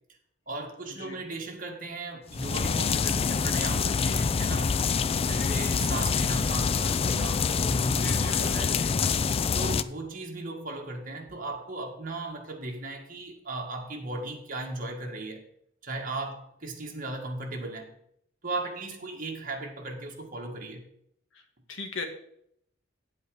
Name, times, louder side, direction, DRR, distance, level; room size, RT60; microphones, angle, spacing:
voice 1, 0.5-4.8 5.3-9.0 9.5-15.4 15.8-17.9 18.4-20.8, right 2 dB, 45° right, 1 dB, 1.8 m, -36 dB
sound 1, 2.3-9.8, left 5 dB, 30° left, 0.3 m, -26 dB
voice 2, 5.1-5.6 8.0-8.9 21.3-21.4 21.7-22.1, left 3 dB, 75° left, 5 dB, 1.6 m, -38 dB
9.3 x 7.9 x 4.9 m, 0.72 s
head